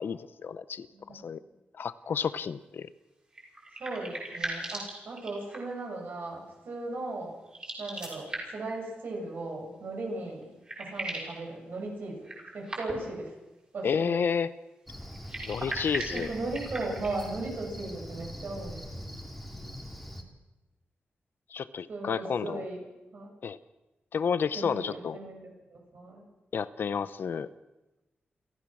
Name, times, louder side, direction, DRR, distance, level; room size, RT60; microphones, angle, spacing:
voice 1, 0.0-0.9 1.2-1.4 1.8-2.9 13.8-14.5 15.5-16.3 21.5-22.6 23.4-23.6 24.1-25.2 26.5-27.5, left 6 dB, 70° left, 15 dB, 0.8 m, -30 dB
voice 2, 0.9-1.3 3.8-7.3 7.8-10.5 10.8-12.3 12.5-13.4 13.7-14.2 16.1-19.0 21.9-22.8 23.1-23.3 24.5-26.2, right 2 dB, 70° right, -1 dB, 7.4 m, -37 dB
sound 1, 3.3-5.8 7.4-8.7 10.1-10.2 10.4-11.4 12.2-13.2 15.1-17.3, right 2 dB, 25° right, 5.9 m, -38 dB
Cricket, 14.9-20.2, equal, ahead, 2.6 m, -42 dB
29.0 x 14.0 x 6.4 m, 1.0 s
wide cardioid pair, 145°, 4 cm